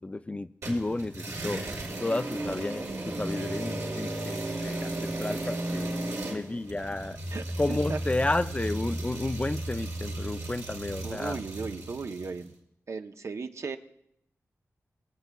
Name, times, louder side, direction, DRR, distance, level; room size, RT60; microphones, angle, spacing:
voice 1, 0.0-6.0 6.3-7.2 7.6-11.4, left 2 dB, 25° left, 12 dB, 0.3 m, -32 dB
sound 1, 0.6-12.4, right 1 dB, 80° right, 3.3 m, -34 dB
voice 2, 7.3-8.0 11.0-12.5 12.9-13.8, right 4 dB, 60° right, 7 dB, 0.7 m, -36 dB
22.0 x 8.2 x 2.2 m, 0.75 s
wide cardioid pair, 85°, 6 cm